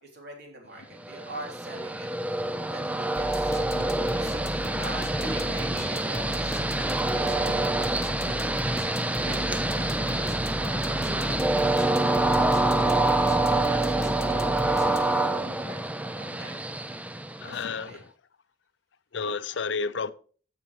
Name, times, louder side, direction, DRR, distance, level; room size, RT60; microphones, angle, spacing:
voice 1, 0.0-2.1 2.7-6.6 7.1-8.7 9.2-11.9 12.2-15.3 15.6-16.6 17.4-18.0, right 2 dB, 60° right, 3.3 m, -45 dB
Train, 1.1-17.8, right 2 dB, 10° right, 0.4 m, -26 dB
sound 1, 3.1-15.4, equal, 15° left, 1.2 m, -36 dB
voice 2, 17.4-18.0 19.1-20.1, left 5 dB, 65° left, 0.6 m, -31 dB
16.0 x 6.0 x 3.2 m
head